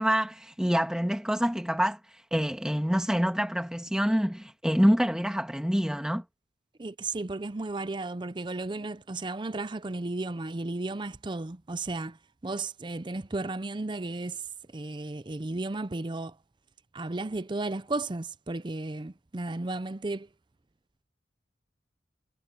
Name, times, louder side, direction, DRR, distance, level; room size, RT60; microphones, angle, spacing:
voice 1, 0.0-2.0 2.3-6.2, equal, 5° right, 1.6 m, -26 dB
voice 2, 6.8-12.2 12.4-14.4 14.7-16.3 16.9-20.3, right 2 dB, 25° right, 0.5 m, -34 dB
head